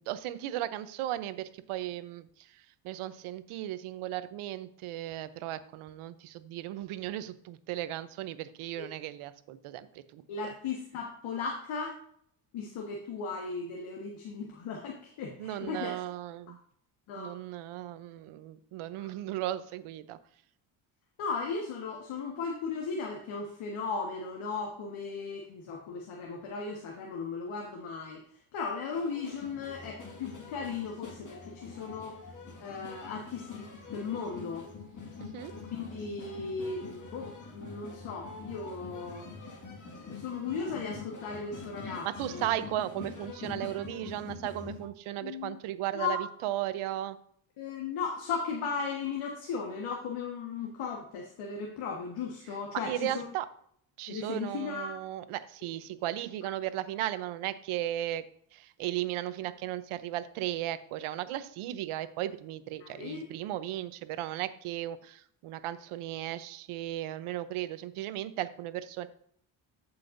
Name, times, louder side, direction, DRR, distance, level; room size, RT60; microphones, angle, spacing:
voice 1, 0.0-10.2 15.4-16.6 17.2-20.2 35.2-35.5 41.8-47.2 52.9-53.5 54.0-58.2 58.5-69.1, right 13 dB, 75° right, 13 dB, 0.8 m, -36 dB
voice 2, 10.3-12.0 12.5-15.9 17.1-17.3 19.0-19.1 21.2-28.2 28.5-32.2 32.6-34.7 35.5-39.3 40.0-42.5 45.2-45.6 45.9-46.2 47.6-53.2 54.1-54.9 62.8-63.3, left 5 dB, 75° left, 0 dB, 1.6 m, -36 dB
sound 1, 28.9-44.9, left 4 dB, 35° left, 1.9 m, -45 dB
15.0 x 5.7 x 2.6 m, 0.65 s
supercardioid pair, 75°, 50 cm